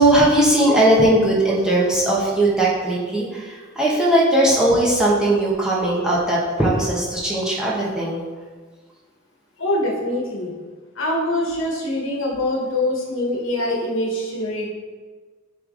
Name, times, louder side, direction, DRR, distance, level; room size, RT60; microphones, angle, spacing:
voice 1, 0.0-8.2, right 1 dB, 5° right, -6 dB, 1.2 m, -18 dB
voice 2, 9.6-10.5 11.0-14.7, left 1 dB, 70° left, -2 dB, 1.5 m, -24 dB
9.7 x 3.4 x 3.9 m, 1.4 s
head